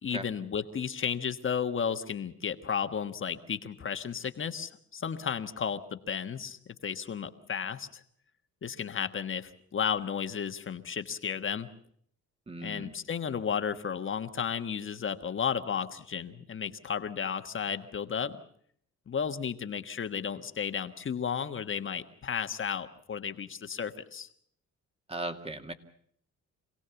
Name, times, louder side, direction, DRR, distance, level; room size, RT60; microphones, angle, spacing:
voice 1, 0.0-8.0 8.6-11.7 12.6-18.4 19.1-24.3, left 7 dB, 40° left, 8 dB, 1.5 m, -33 dB
voice 2, 12.5-12.9 25.1-25.7, right 2 dB, 20° right, 7 dB, 2.1 m, -37 dB
26.0 x 17.0 x 7.1 m, 0.64 s
cardioid pair, 90°, 30 cm